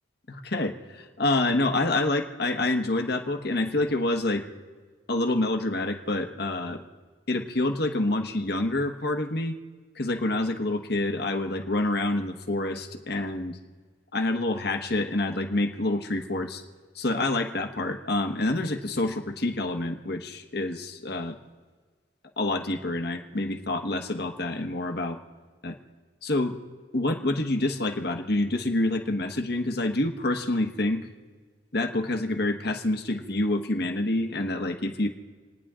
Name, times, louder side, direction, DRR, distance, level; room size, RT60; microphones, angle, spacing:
voice 1, 0.3-4.4 5.1-6.8 7.3-9.5 9.9-13.6 14.1-16.6 16.9-21.4 22.4-25.2 25.6-25.7 26.2-26.6 26.9-31.1 31.7-35.1, left 2 dB, 60° left, 4 dB, 1.3 m, -27 dB
30.0 x 10.0 x 3.7 m, 1.4 s
head